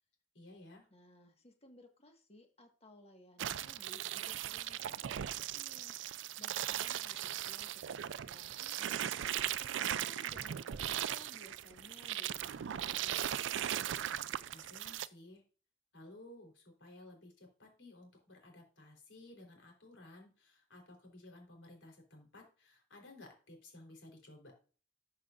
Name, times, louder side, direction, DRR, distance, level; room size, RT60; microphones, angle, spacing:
voice 1, 0.3-0.9 14.5-15.4 15.9-24.5, left 2 dB, 85° left, 2 dB, 3.8 m, -56 dB
voice 2, 0.9-13.6, left 1 dB, 35° left, 4 dB, 1.6 m, -59 dB
sound 1, 3.4-15.1, right 11 dB, 80° right, 0.4 m, -38 dB
12.0 x 6.4 x 2.5 m, 0.38 s
head